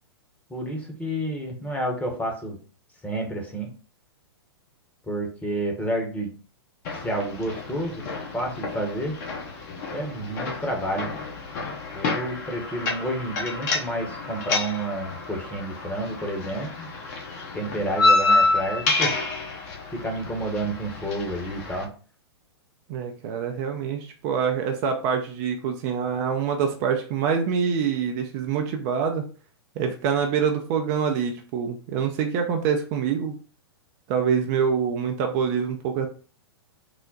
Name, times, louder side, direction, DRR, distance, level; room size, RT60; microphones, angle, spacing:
voice 1, 0.5-2.6 3.0-3.7 5.1-6.3 7.0-8.0 8.3-9.1 9.9-11.1 11.9-16.9 17.5-19.1 19.9-21.9, right 1 dB, 10° left, 1 dB, 1.0 m, -30 dB
sound 1, 6.8-21.8, left 3 dB, 45° left, 1.0 m, -28 dB
voice 2, 22.9-29.2 29.8-33.4 34.1-36.1, right 7 dB, 40° right, 4 dB, 0.6 m, -25 dB
3.9 x 2.0 x 3.9 m, 0.38 s
figure-of-eight pair, 110°, 14 cm